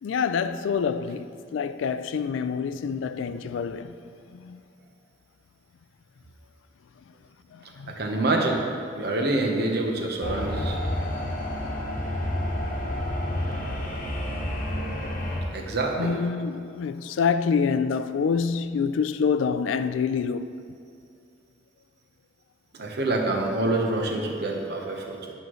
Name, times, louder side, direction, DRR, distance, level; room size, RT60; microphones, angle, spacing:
voice 1, 0.0-3.9 4.3-4.6 7.5-8.0 16.0-20.6, left 6 dB, 80° left, 0.3 m, -27 dB
voice 2, 7.9-8.6 8.9-10.8 15.5-16.1 22.7-25.3, right 2 dB, 55° right, 0.9 m, -26 dB
sound 1, 10.2-15.4, left 1 dB, 45° left, 1.1 m, -29 dB
10.5 x 6.3 x 3.1 m
head